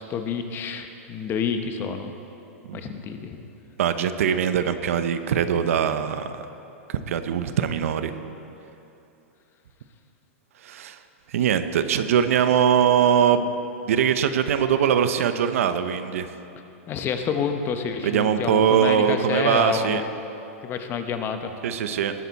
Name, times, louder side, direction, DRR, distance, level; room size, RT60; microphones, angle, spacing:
voice 1, 0.0-2.1 2.7-3.4 16.9-20.1 20.6-21.5, left 6 dB, 30° left, 7 dB, 0.9 m, -28 dB
voice 2, 3.8-6.4 6.9-8.1 10.6-11.0 11.3-13.5 13.9-16.3 18.0-20.0 21.6-22.1, right 8 dB, 75° right, 10 dB, 0.8 m, -22 dB
19.5 x 9.2 x 4.1 m, 2.9 s
hypercardioid pair, 130°, 8 cm